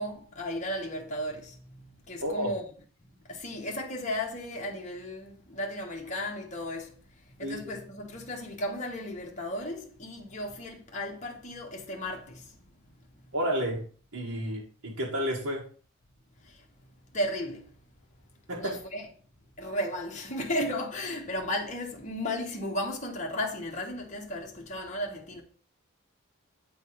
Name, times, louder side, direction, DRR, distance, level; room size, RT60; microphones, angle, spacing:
voice 1, 0.0-2.6 3.3-6.9 7.4-12.4 17.1-17.6 18.5-19.1 19.6-25.4, left 1 dB, 35° left, 1.2 m, -34 dB
voice 2, 13.3-13.9 14.1-15.6 18.5-18.8, equal, 90° right, 2.0 m, -31 dB
8.6 x 3.8 x 5.0 m
head